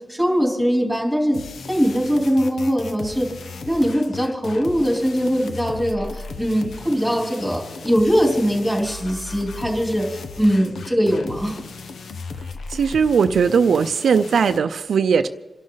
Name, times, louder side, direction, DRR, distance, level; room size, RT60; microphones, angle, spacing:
voice 1, 0.1-1.4 1.7-3.3 3.6-11.6, equal, 5° left, -1 dB, 3.4 m, -21 dB
sound 1, 1.3-14.6, left 4 dB, 75° left, 0.9 m, -36 dB
voice 2, 12.7-15.3, right 6 dB, 75° right, 9 dB, 0.5 m, -18 dB
27.5 x 11.5 x 4.0 m, 1.1 s
wide cardioid pair, 160°, 0 cm